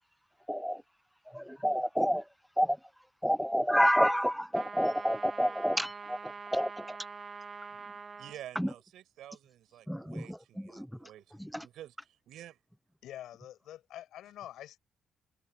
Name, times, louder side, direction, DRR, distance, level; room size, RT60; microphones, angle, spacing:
voice 1, 0.5-0.8 1.3-2.2 2.6-2.8 3.2-6.2 6.5-7.0 8.6-8.7 9.9-10.4 10.7-10.9 11.5-11.6, equal, ahead, 0.4 m, -28 dB
sound 1, 4.5-8.4, right 5 dB, 30° right, 1.0 m, -44 dB
voice 2, 8.2-12.6, right 12 dB, 75° right, 7.5 m, -50 dB
voice 3, 13.0-14.8, left 12 dB, 75° left, 5.0 m, -46 dB
cardioid pair, 140°, 0 cm